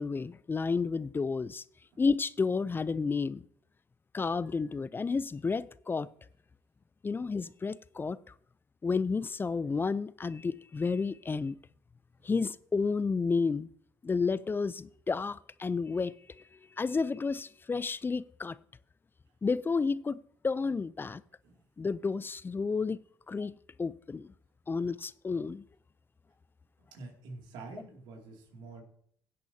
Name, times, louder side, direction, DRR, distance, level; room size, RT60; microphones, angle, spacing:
voice 1, 0.0-1.6 2.0-3.4 4.1-6.1 7.0-8.2 8.8-11.5 12.2-13.7 14.0-16.4 16.8-18.6 19.4-21.2 21.8-23.0 23.3-24.3 24.7-25.7, left 4 dB, 25° left, 0.4 m, -31 dB
voice 2, 26.9-28.8, right 3 dB, 75° right, 2.5 m, -47 dB
16.0 x 8.4 x 2.8 m
hypercardioid pair, 55°, 8 cm